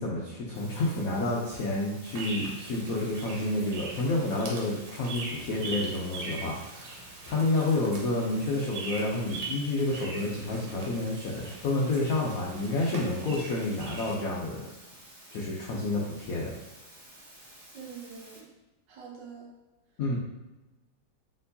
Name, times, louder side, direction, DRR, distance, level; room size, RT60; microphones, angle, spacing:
voice 1, 0.0-14.6 15.3-16.5 20.0-20.2, left 2 dB, 85° left, -3 dB, 0.7 m, -29 dB
sound 1, 0.5-18.4, right 1 dB, 40° right, 1.3 m, -52 dB
sound 2, 2.0-14.2, right 3 dB, 80° right, 1.7 m, -41 dB
voice 2, 17.7-18.5 18.9-19.4, right 6 dB, 65° right, -2 dB, 1.4 m, -44 dB
4.4 x 3.6 x 2.6 m, 1.1 s
omnidirectional pair, 2.3 m